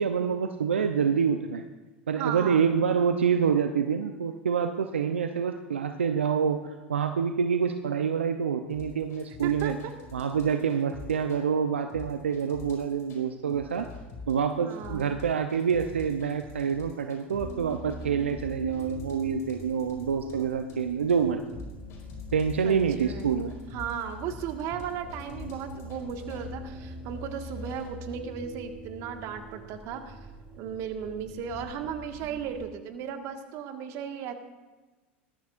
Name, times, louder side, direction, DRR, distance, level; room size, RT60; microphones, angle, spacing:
voice 1, 0.0-1.6 2.1-9.8 10.1-13.9 14.3-21.4 22.3-23.5, right 7 dB, 85° right, 7 dB, 0.7 m, -27 dB
voice 2, 2.2-2.7 9.4-9.9 14.6-15.1 22.6-23.3 23.7-30.2 30.6-34.3, right 8 dB, 55° right, 5 dB, 1.8 m, -36 dB
sound 1, 8.7-11.4 11.9-13.2 13.5-26.5 27.1-27.9, left 2 dB, 50° left, 4.6 m, -46 dB
sound 2, 17.4-32.7, left 1 dB, 15° right, 4.7 m, -44 dB
19.5 x 14.0 x 2.6 m, 1.2 s
hypercardioid pair, 85°, 6 cm